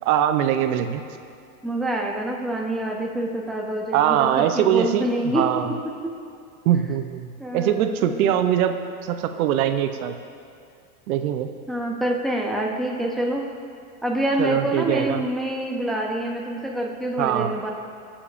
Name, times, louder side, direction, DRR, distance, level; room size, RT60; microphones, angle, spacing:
voice 1, 0.0-1.0 3.9-5.1 5.3-5.7 6.6-7.3 7.5-10.1 11.1-11.5 14.4-15.2 17.2-17.6, right 10 dB, 75° right, 8 dB, 0.7 m, -22 dB
voice 2, 1.6-4.3 4.5-5.5 7.4-8.3 11.7-13.4 14.0-17.7, right 1 dB, ahead, -1 dB, 0.7 m, -26 dB
18.0 x 7.2 x 2.5 m, 2.4 s
supercardioid pair, 125°, 43 cm